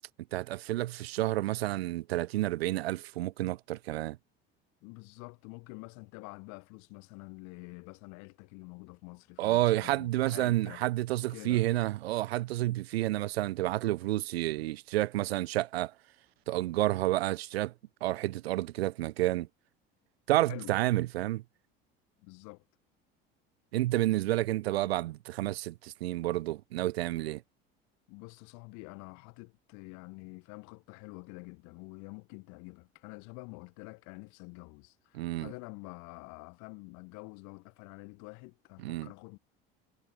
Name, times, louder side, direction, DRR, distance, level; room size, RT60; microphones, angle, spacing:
voice 1, 0.3-4.2 9.4-15.9 16.5-17.7 18.0-19.5 20.3-21.4 23.7-27.4 35.1-35.5 38.8-39.1, right 16 dB, 80° right, 1.3 m, -30 dB
voice 2, 4.8-10.8 11.3-11.7 20.5-20.8 22.2-22.6 28.1-39.4, left 31 dB, 70° left, 4.7 m, -47 dB
hypercardioid pair, 70°, 30 cm